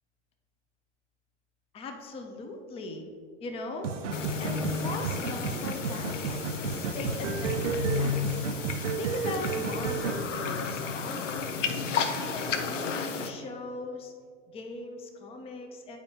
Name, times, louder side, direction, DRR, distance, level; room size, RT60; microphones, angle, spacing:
voice 1, 1.7-3.1 3.4-4.1 4.4-8.2 9.0-11.8 12.3-14.1 14.5-16.0, left 3 dB, 15° left, 4 dB, 0.5 m, -39 dB
sound 1, 3.8-10.2, right 6 dB, 85° right, 0.6 m, -33 dB
sound 2, 4.1-13.3, left 5 dB, 85° left, 0.7 m, -32 dB
9.4 x 4.3 x 2.8 m, 2.1 s
hypercardioid pair, 120°, 36 cm